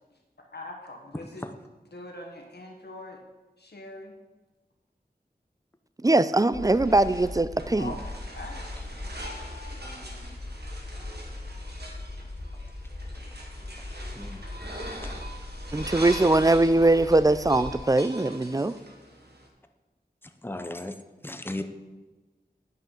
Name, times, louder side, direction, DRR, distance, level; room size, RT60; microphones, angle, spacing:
voice 1, 0.5-1.5 1.9-3.2 3.6-4.2 7.8-8.9 9.4-10.3, left 2 dB, 90° left, 1 dB, 1.3 m, -43 dB
voice 2, 6.0-7.9 15.7-18.8, right 2 dB, 20° right, 15 dB, 0.4 m, -21 dB
sound 1, 6.5-17.8, left 2 dB, 60° left, 2.6 m, -39 dB
sound 2, 6.6-19.5, right 1 dB, 90° right, 1.3 m, -42 dB
voice 3, 14.1-14.5 15.0-15.1 20.4-21.0 21.2-21.6, left 1 dB, 15° left, 7 dB, 0.7 m, -35 dB
9.5 x 5.7 x 5.6 m, 1.2 s
wide cardioid pair, 40°, 17 cm